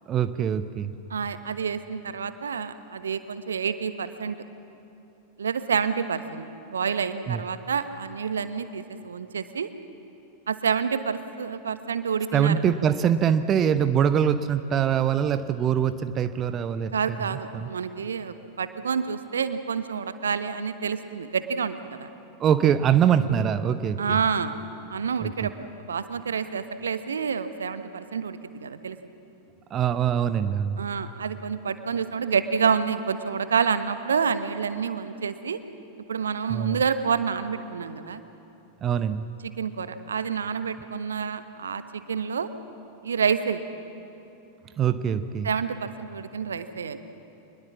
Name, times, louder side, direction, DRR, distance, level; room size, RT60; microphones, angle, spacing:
voice 1, 0.1-0.9 7.3-7.4 12.3-17.7 22.4-24.2 25.2-25.3 29.7-30.8 36.5-36.8 38.8-39.3 44.8-45.5, right 8 dB, 30° right, 12 dB, 0.7 m, -23 dB
voice 2, 1.1-4.4 5.4-9.7 10.5-12.5 16.9-22.1 24.0-24.6 24.9-29.0 30.8-35.6 36.1-38.2 39.4-42.5 43.0-43.7 45.4-47.0, right 6 dB, 70° right, 11 dB, 1.0 m, -28 dB
24.5 x 20.5 x 7.3 m, 3.0 s
figure-of-eight pair, 90°, 0 cm